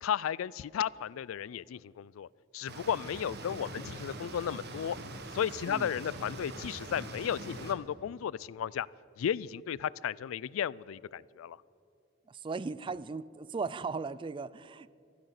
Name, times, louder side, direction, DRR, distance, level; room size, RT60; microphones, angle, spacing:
voice 1, 0.0-2.3 2.5-5.0 5.3-8.9 9.2-11.6, left 9 dB, 90° left, 22 dB, 0.3 m, -34 dB
sound 1, 2.7-7.7, right 2 dB, 55° right, 1.4 m, -43 dB
voice 2, 12.3-14.9, right 4 dB, 25° right, 19 dB, 0.3 m, -37 dB
14.5 x 12.0 x 6.6 m, 2.6 s
head